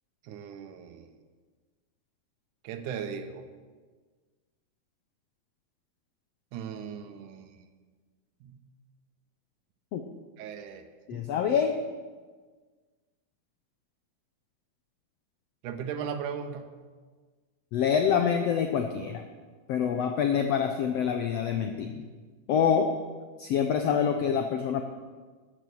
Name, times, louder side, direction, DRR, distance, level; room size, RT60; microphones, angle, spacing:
voice 1, 0.2-1.1 2.6-3.4 6.5-7.6 8.4-8.6 10.4-10.8 11.1-11.3 15.6-16.7, right 7 dB, 75° right, 6 dB, 2.4 m, -37 dB
voice 2, 11.1-11.8 17.7-19.2 19.7-22.1 22.5-22.9 23.4-24.8, left 7 dB, 80° left, 5 dB, 1.4 m, -26 dB
13.5 x 8.9 x 6.2 m, 1.5 s
omnidirectional pair, 3.7 m